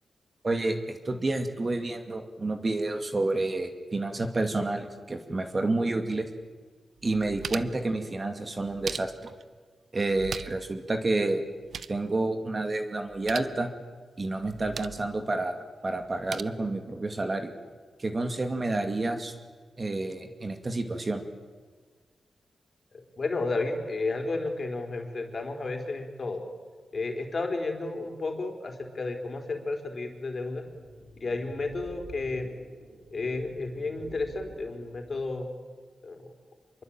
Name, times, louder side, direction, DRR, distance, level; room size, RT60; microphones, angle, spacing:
voice 1, 0.4-6.3 7.0-9.3 9.9-11.4 11.9-13.7 14.2-15.6 15.8-17.5 18.0-19.3 19.8-21.2, right 2 dB, 35° right, 6 dB, 2.5 m, -29 dB
sound 1, 6.4-6.5 7.0-7.9 8.6-9.4 10.1-10.7 11.0-11.1 11.4-12.0 13.1-13.5 14.4-15.1 16.0-16.4, right 6 dB, 70° right, 0.8 m, -39 dB
voice 2, 22.9-26.4 26.9-30.6 31.2-32.5 33.1-35.5 36.0-36.3, left 3 dB, 45° left, 4 dB, 4.4 m, -32 dB
sound 2, 30.6-35.5, right 1 dB, 50° right, 3.9 m, -49 dB
26.5 x 23.0 x 9.0 m, 1.5 s
cardioid pair, 90°, 0 cm